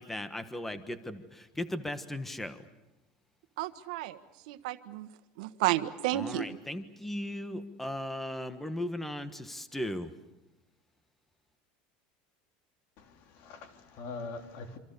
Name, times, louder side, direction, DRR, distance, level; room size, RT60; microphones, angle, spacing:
voice 1, 0.0-2.6 6.1-10.1, left 1 dB, 5° left, 1.4 m, -37 dB
voice 2, 3.6-4.2 4.5-5.1 5.4-6.4, right 15 dB, 80° right, 1.4 m, -31 dB
voice 3, 13.0-14.8, left 3 dB, 55° left, 3.2 m, -43 dB
27.0 x 26.0 x 6.9 m
supercardioid pair, 150°, 4 cm